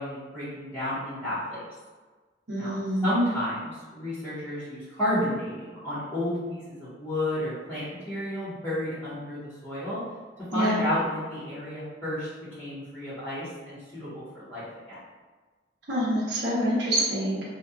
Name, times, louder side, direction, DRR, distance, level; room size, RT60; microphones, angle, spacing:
voice 1, 0.0-1.6 2.6-2.7 3.0-10.0 10.5-12.3 12.6-15.0, left 1 dB, 15° left, -16 dB, 1.0 m, -31 dB
voice 2, 2.5-3.0 10.5-10.8 15.9-17.4, equal, 60° right, -8 dB, 0.7 m, -26 dB
2.7 x 2.3 x 2.4 m, 1.3 s
head